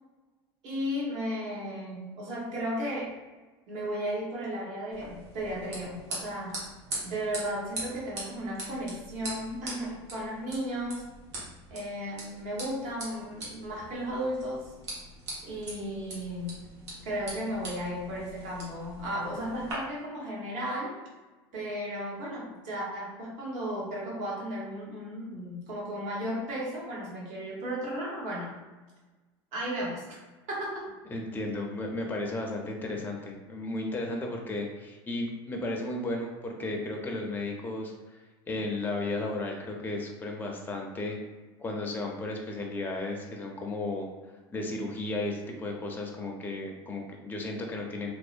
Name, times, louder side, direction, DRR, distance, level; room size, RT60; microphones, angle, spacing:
voice 1, 0.6-3.1 3.7-6.6 7.0-11.0 11.7-14.6 15.4-16.6 17.0-20.9 21.5-28.5 29.5-30.0 30.5-30.9, equal, 60° right, -4 dB, 1.0 m, -34 dB
sound 1, 4.9-19.7, right 1 dB, 85° right, 0.9 m, -42 dB
voice 2, 31.1-38.2 38.5-41.2 41.6-44.1 44.5-48.1, left 2 dB, 15° left, 1 dB, 0.5 m, -34 dB
2.6 x 2.0 x 2.4 m, 1.2 s
hypercardioid pair, 90°, 14 cm